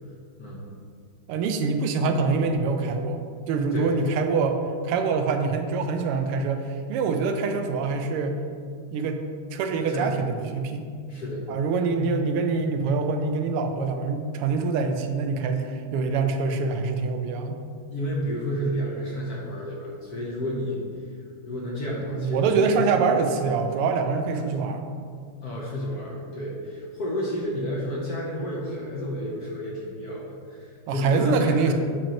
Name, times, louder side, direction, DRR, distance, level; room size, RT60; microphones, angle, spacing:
voice 1, 1.3-4.6 4.8-8.4 8.9-9.2 9.5-10.9 11.5-17.6 22.1-24.8 30.9-31.7, right 4 dB, 90° right, 6 dB, 1.6 m, -25 dB
voice 2, 9.9-10.2 11.1-11.5 12.0-12.2 17.9-20.8 21.4-22.7 25.4-31.7, equal, 60° left, -3 dB, 1.1 m, -30 dB
7.6 x 3.0 x 5.1 m, 2.2 s
omnidirectional pair, 2.4 m